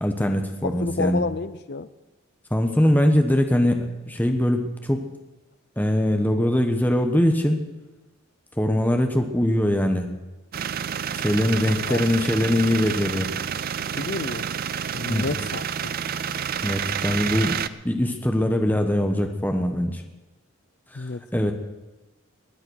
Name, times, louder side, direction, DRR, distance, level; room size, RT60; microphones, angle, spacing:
voice 1, 0.0-1.2 2.5-5.0 5.8-7.6 8.6-10.1 11.1-13.3 15.1-15.3 16.6-17.6 17.8-20.0 20.9-21.0 21.3-21.5, left 1 dB, 10° left, 5 dB, 1.1 m, -22 dB
voice 2, 0.6-1.9 11.9-12.0 13.8-14.4 14.9-16.0 20.9-21.2, left 3 dB, 50° left, 14 dB, 0.6 m, -30 dB
sound 1, 10.5-17.7, right 8 dB, 40° right, 0.4 m, -29 dB
19.5 x 9.7 x 6.4 m, 1.1 s
head